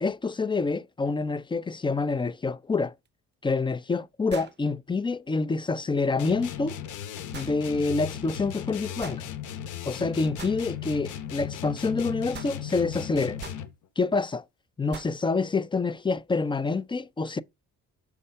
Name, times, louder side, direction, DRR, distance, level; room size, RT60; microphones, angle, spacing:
voice 1, 0.0-2.9 3.4-6.8 7.3-9.2 9.8-13.4 14.0-14.4 14.8-17.4, left 4 dB, 15° left, 0.4 m, -27 dB
sound 1, 3.1-3.2 4.3-4.6 7.3-7.6 9.0-9.2 10.4-10.6 12.3-12.6 13.4-13.7 14.9-15.2, right 7 dB, 35° right, 0.9 m, -42 dB
sound 2, 6.2-13.8, left 9 dB, 80° left, 1.1 m, -37 dB
6.7 x 3.6 x 5.5 m
cardioid pair, 90°, 30 cm